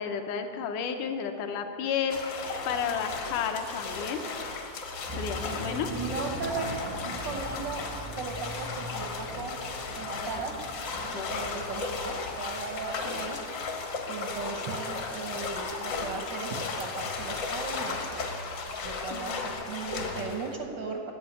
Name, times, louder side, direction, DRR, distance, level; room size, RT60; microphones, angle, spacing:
voice 1, 0.0-4.2 5.1-5.9 10.3-10.4 11.1-11.6 19.1-19.5, left 7 dB, 75° left, 6 dB, 2.3 m, -32 dB
sound 1, 2.1-20.6, left 4 dB, 60° left, 1.2 m, -35 dB
sound 2, 5.1-13.1, right 1 dB, 40° right, 0.4 m, -41 dB
voice 2, 5.9-6.7 7.2-7.9 8.2-9.6 9.9-10.6 11.0-13.4 14.1-18.4 18.8-21.1, right 4 dB, 80° right, 2 dB, 1.0 m, -37 dB
12.0 x 8.1 x 9.8 m, 2.8 s
omnidirectional pair, 3.7 m